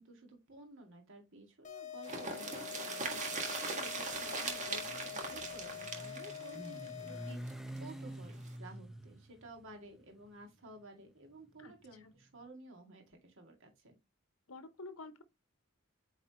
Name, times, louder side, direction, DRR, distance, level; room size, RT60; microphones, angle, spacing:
voice 1, 0.0-14.0, right 2 dB, 65° right, 2.1 m, -54 dB
sound 1, 1.6-7.6, left 10 dB, 35° left, 1.0 m, -46 dB
sound 2, 2.0-7.8 8.1-8.2 8.5-8.6, right 3 dB, 35° right, 1.7 m, -40 dB
Motorcycle, 4.1-12.3, right 1 dB, ahead, 0.6 m, -49 dB
voice 2, 14.5-15.2, left 2 dB, 70° left, 0.9 m, -49 dB
8.5 x 4.0 x 3.0 m
head